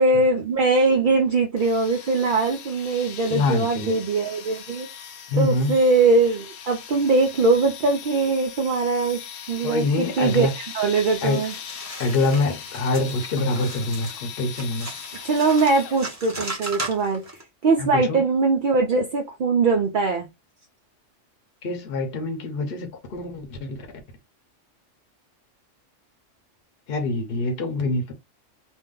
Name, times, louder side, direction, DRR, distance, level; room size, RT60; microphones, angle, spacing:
voice 1, 0.0-4.9 5.3-9.2 9.5-11.5 15.2-17.2 17.6-20.3, right 3 dB, 65° right, 0.5 m, -21 dB
sound 1, 1.6-16.3, left 8 dB, 85° left, 1.0 m, -40 dB
voice 2, 3.3-4.0 5.3-5.7 9.6-10.5 11.2-11.4 12.0-14.9 17.8-18.2 21.6-23.8 26.9-28.1, left 2 dB, 55° left, 0.9 m, -25 dB
sound 2, 11.5-17.4, right 2 dB, 20° right, 0.6 m, -37 dB
2.6 x 2.1 x 3.6 m
omnidirectional pair, 1.3 m